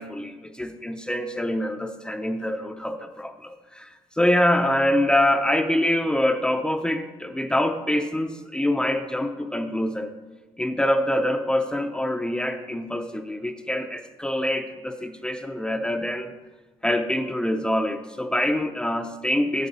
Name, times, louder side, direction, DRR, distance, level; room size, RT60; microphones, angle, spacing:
voice 1, 0.0-3.9 4.2-10.1 10.6-16.3 16.8-19.7, left 1 dB, 10° left, 6 dB, 0.5 m, -25 dB
9.5 x 8.5 x 4.1 m, 1.2 s
cardioid pair, 125°, 11 cm